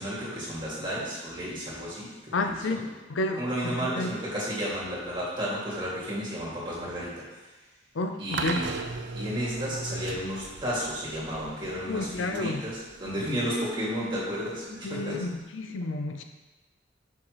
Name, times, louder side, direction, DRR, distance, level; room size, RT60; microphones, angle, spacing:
voice 1, 0.0-2.8 3.3-7.4 8.2-8.7 9.1-15.2, equal, 25° right, -8 dB, 2.1 m, -32 dB
voice 2, 2.3-4.1 7.9-8.6 11.9-12.7 14.8-16.2, left 2 dB, 90° left, 6 dB, 0.5 m, -31 dB
sound 1, 8.3-15.4, right 3 dB, 65° right, 0.4 m, -39 dB
6.2 x 5.8 x 3.1 m, 1.1 s
head